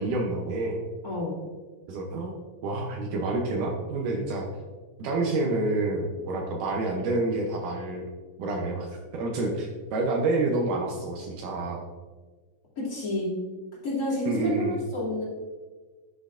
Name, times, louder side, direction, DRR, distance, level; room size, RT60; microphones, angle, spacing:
voice 1, 0.0-0.9 1.9-2.3 2.6-4.5 5.0-8.0 8.4-11.8 14.3-14.8, right 2 dB, 75° right, 0 dB, 2.2 m, -28 dB
voice 2, 1.0-1.3 12.8-13.3 13.8-15.2, left 2 dB, 30° left, -7 dB, 2.5 m, -29 dB
10.0 x 6.2 x 2.5 m, 1.4 s
omnidirectional pair, 3.8 m